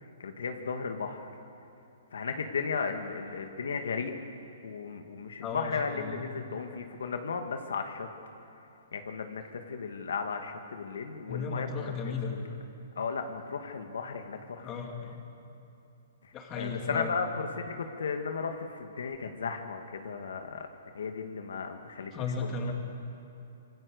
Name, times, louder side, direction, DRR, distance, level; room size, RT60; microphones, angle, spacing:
voice 1, 0.2-1.3 2.1-4.1 4.6-8.1 8.9-12.5 13.0-14.7 16.6-20.7 20.9-22.5, left 5 dB, 85° left, 5 dB, 2.2 m, -35 dB
voice 2, 5.4-6.3 11.3-12.4 14.6-15.2 16.3-17.2 22.1-22.7, left 4 dB, 20° left, 2 dB, 2.8 m, -35 dB
26.0 x 24.5 x 6.7 m, 2.7 s
hypercardioid pair, 160°, 0 cm